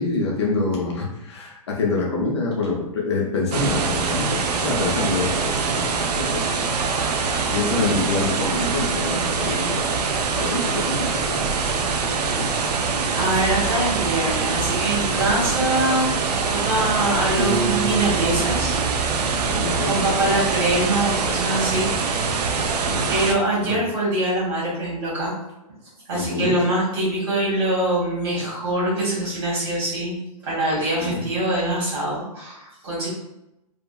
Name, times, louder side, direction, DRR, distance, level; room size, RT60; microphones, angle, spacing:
voice 1, 0.0-6.7 7.5-11.7 12.0-12.5 19.3-20.3 22.8-23.1 23.7-23.8 26.1-26.5 31.0-31.2, left 3 dB, 45° left, -2 dB, 0.5 m, -26 dB
sound 1, 3.5-23.3, right 5 dB, 90° right, 0.4 m, -24 dB
voice 2, 13.1-18.8 19.8-21.9 22.2-22.7 23.1-25.3 26.1-33.1, right 1 dB, 45° right, -6 dB, 1.5 m, -24 dB
Piano, 17.4-20.3, right 3 dB, 65° right, 1.1 m, -30 dB
2.8 x 2.4 x 2.2 m, 0.89 s
hypercardioid pair, 175°, 20 cm